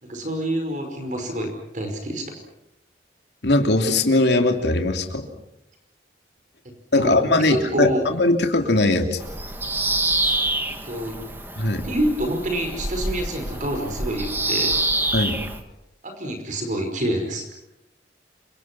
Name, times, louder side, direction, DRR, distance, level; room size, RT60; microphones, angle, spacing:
voice 1, 0.0-2.3 6.7-8.1 10.9-11.2 11.8-14.9 16.0-17.5, right 1 dB, 45° right, 5 dB, 5.3 m, -27 dB
voice 2, 3.4-5.3 6.9-9.2 11.6-11.8 15.1-15.4, left 2 dB, 70° left, 5 dB, 3.0 m, -20 dB
Bird vocalization bird call bird song, 9.2-15.6, right 2 dB, 10° right, 2.0 m, -26 dB
29.0 x 26.0 x 6.2 m, 0.87 s
head